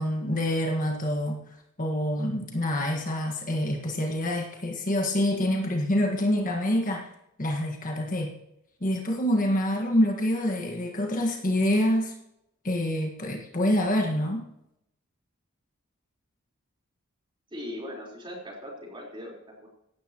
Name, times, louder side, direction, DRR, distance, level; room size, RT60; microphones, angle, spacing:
voice 1, 0.0-1.4 1.8-7.1 7.4-8.3 8.8-12.1 12.6-14.4, left 1 dB, 40° left, 1 dB, 1.7 m, -26 dB
voice 2, 17.5-19.7, left 1 dB, 25° right, -2 dB, 4.2 m, -39 dB
17.0 x 12.5 x 3.0 m, 0.80 s
head